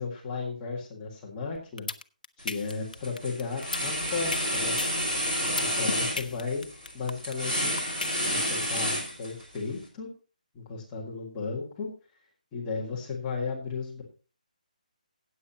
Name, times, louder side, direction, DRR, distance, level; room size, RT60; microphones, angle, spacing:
voice 1, 0.0-1.9 2.4-4.8 5.6-6.7 6.9-7.7 8.3-10.1 10.5-11.9 12.5-14.0, left 4 dB, 10° left, -3 dB, 1.8 m, -34 dB
sound 1, 1.6-8.8, left 4 dB, 75° left, 0.9 m, -34 dB
sound 2, 2.4-2.7 3.0-9.6, equal, 15° right, 2.9 m, -30 dB
15.5 x 8.6 x 2.9 m, 0.34 s
hypercardioid pair, 175°, 5 cm